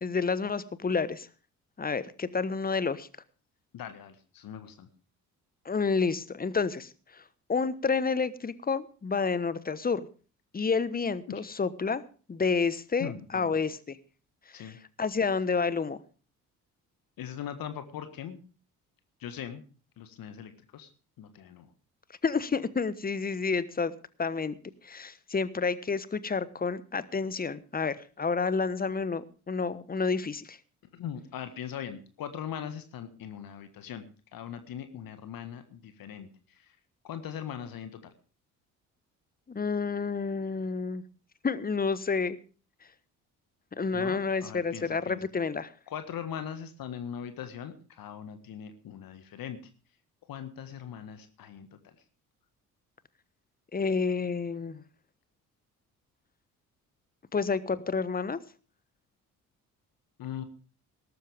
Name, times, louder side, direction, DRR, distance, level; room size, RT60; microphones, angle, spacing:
voice 1, 0.0-1.3 1.8-3.1 5.6-7.2 7.5-10.1 10.5-12.0 12.3-14.0 14.5-14.7 15.0-16.0 22.2-23.9 24.2-24.6 24.8-30.6 39.5-41.0 41.4-42.4 43.8-45.7 53.7-54.8 57.3-58.4, left 5 dB, 20° left, 16 dB, 1.1 m, -29 dB
voice 2, 3.7-4.9 13.0-13.5 14.5-14.8 17.2-18.4 19.2-19.6 20.0-20.9 21.2-21.7 30.9-36.8 37.0-38.1 43.9-45.3 45.9-49.6 50.3-51.9 60.2-60.4, left 9 dB, 50° left, 9 dB, 1.6 m, -40 dB
18.5 x 13.0 x 3.5 m, 0.38 s
figure-of-eight pair, 45°, 44 cm